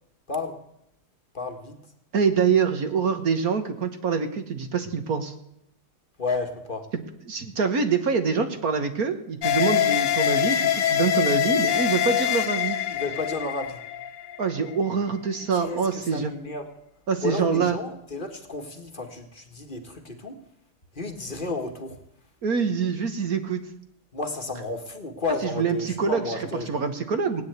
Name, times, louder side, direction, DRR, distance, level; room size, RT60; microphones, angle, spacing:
voice 1, 0.3-0.6 1.3-1.8 6.2-6.9 12.9-13.8 15.5-16.7 17.2-20.4 20.9-22.0 24.1-26.7, left 3 dB, 25° left, 4 dB, 1.6 m, -32 dB
voice 2, 2.1-5.3 7.3-12.8 14.4-16.3 17.1-17.8 22.4-23.7 25.6-26.2 26.7-27.4, right 5 dB, 50° right, 8 dB, 1.5 m, -25 dB
sound 1, 9.4-14.8, left 10 dB, 85° left, 1.7 m, -24 dB
17.5 x 9.6 x 8.1 m, 0.80 s
omnidirectional pair, 2.4 m